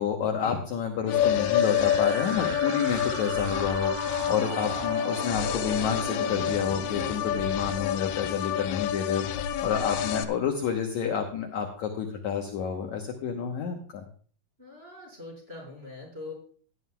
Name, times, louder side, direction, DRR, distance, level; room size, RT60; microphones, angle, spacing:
voice 1, 0.0-9.2 9.6-14.0, left 7 dB, 65° left, 2 dB, 2.0 m, -29 dB
sound 1, 1.1-10.2, left 10 dB, 85° left, 2.6 m, -28 dB
sound 2, 1.1-9.0, right 14 dB, 85° right, 2.5 m, -40 dB
sound 3, 4.9-5.0 5.3-6.7 6.9-7.0 7.3-9.0 9.3-10.7 10.9-11.0, left 1 dB, 40° left, 3.3 m, -43 dB
voice 2, 14.6-16.3, left 3 dB, 15° right, -3 dB, 5.0 m, -42 dB
17.0 x 11.0 x 2.3 m, 0.44 s
omnidirectional pair, 4.3 m